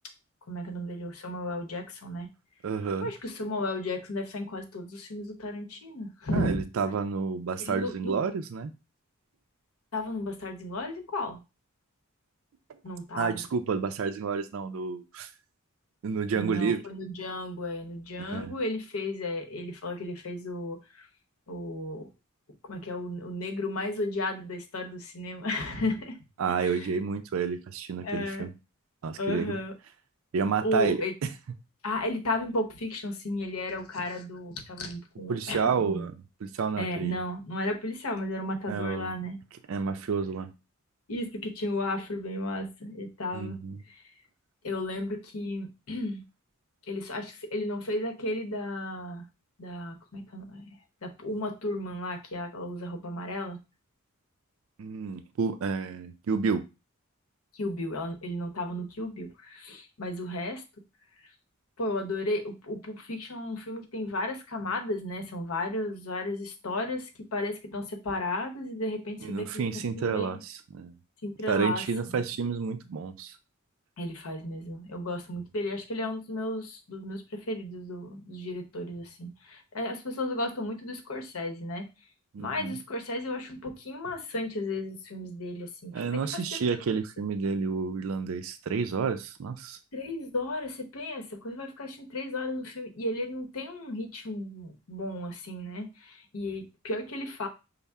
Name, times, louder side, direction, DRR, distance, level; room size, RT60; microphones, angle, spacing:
voice 1, 0.5-2.3 3.0-6.6 7.6-8.2 9.9-11.4 12.8-13.4 16.4-21.1 21.5-22.1 22.6-26.2 26.5-27.0 28.0-28.5 29.2-29.7 30.6-31.1 31.8-36.1 36.8-39.4 41.1-43.6 43.9-44.1 44.6-46.2 46.9-49.3 49.6-50.6 51.0-53.6 57.5-60.6 61.8-69.6 69.9-70.4 71.2-71.8 74.0-81.9 82.4-86.6 89.9-97.5, left 1 dB, 80° left, 4 dB, 0.8 m, -34 dB
voice 2, 2.6-3.1 6.3-8.7 13.2-15.3 16.0-16.8 18.2-18.5 26.4-28.5 29.0-29.6 30.3-31.0 35.3-36.1 36.4-37.2 38.7-39.1 39.7-40.5 43.3-43.8 54.8-56.6 69.2-71.0 71.5-73.4 82.3-82.7 85.9-89.8, right 5 dB, 70° right, 9 dB, 0.4 m, -30 dB
5.4 x 2.0 x 3.4 m, 0.28 s
head